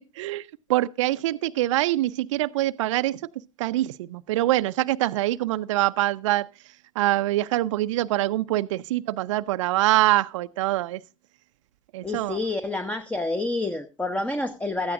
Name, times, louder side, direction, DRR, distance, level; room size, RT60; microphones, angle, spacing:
voice 1, 0.1-3.2 3.6-11.0 11.9-12.4, right 16 dB, 65° right, 0.5 m, -24 dB
voice 2, 12.0-14.9, left 2 dB, 10° left, 1.0 m, -28 dB
17.5 x 13.0 x 2.5 m
figure-of-eight pair, 75°, 17 cm